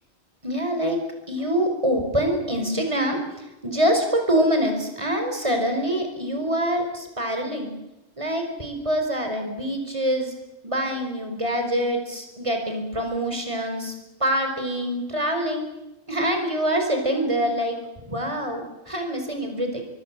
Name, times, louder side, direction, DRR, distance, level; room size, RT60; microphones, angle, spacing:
voice 1, 0.4-1.0 1.3-3.2 3.6-7.7 8.2-10.3 10.6-13.9 14.2-15.6 16.1-17.8 18.1-19.9, equal, 25° right, 4 dB, 5.2 m, -25 dB
25.0 x 23.0 x 7.7 m, 0.97 s
omnidirectional pair, 1.3 m